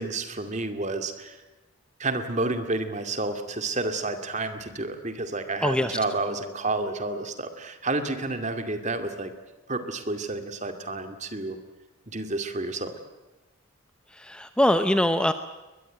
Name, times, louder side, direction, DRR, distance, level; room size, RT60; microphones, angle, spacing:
voice 1, 0.0-1.4 2.0-9.3 9.7-11.6 12.1-12.9, right 2 dB, 35° right, 7 dB, 2.3 m, -30 dB
voice 2, 5.6-6.0 14.1-15.3, left 1 dB, 5° left, 9 dB, 0.7 m, -23 dB
22.5 x 21.0 x 9.1 m, 1.1 s
head